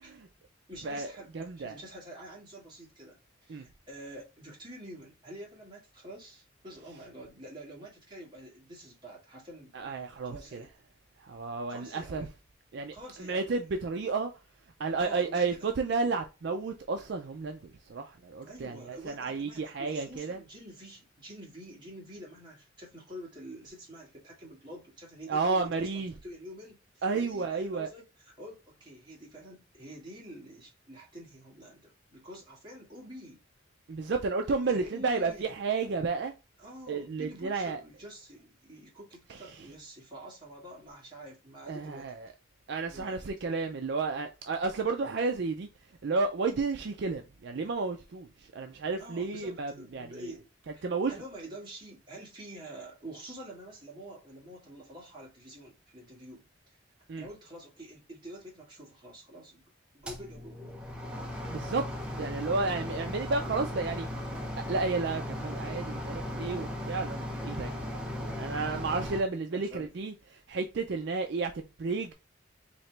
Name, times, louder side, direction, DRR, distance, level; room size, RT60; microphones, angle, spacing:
voice 1, 0.7-9.7 10.2-10.7 11.7-12.3 12.9-13.5 15.0-15.7 18.5-33.4 34.7-35.5 36.6-42.2 42.8-43.3 49.0-56.8 57.2-59.6 59.9-60.8 69.5-70.0, right 1 dB, 20° right, 1.7 m, -47 dB
voice 2, 1.3-1.7 3.5-3.6 9.7-10.6 11.2-12.3 12.7-12.9 13.2-14.3 14.8-20.4 25.3-26.1 27.0-27.9 33.9-36.3 36.9-37.8 39.3-39.4 41.7-42.3 42.7-45.7 46.0-50.3 50.8-51.1 57.1-57.3 61.5-61.8 62.2-64.1 64.7-70.1 70.5-72.1, right 4 dB, 55° right, 0.4 m, -32 dB
sound 1, 60.0-69.2, left 1 dB, 5° right, 0.6 m, -37 dB
4.1 x 2.9 x 3.2 m
head